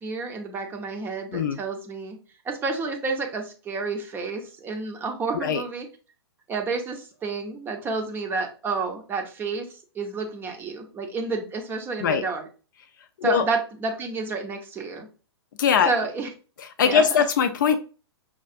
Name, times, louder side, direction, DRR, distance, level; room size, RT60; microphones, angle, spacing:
voice 1, 0.0-2.2 2.4-5.9 6.5-12.4 13.2-15.1 15.9-16.3 16.8-17.0, right 4 dB, 15° right, 0.6 m, -30 dB
voice 2, 15.6-15.9 16.6-17.8, left 7 dB, 45° left, 0.4 m, -21 dB
5.5 x 2.4 x 2.5 m
figure-of-eight pair, 115°, 14 cm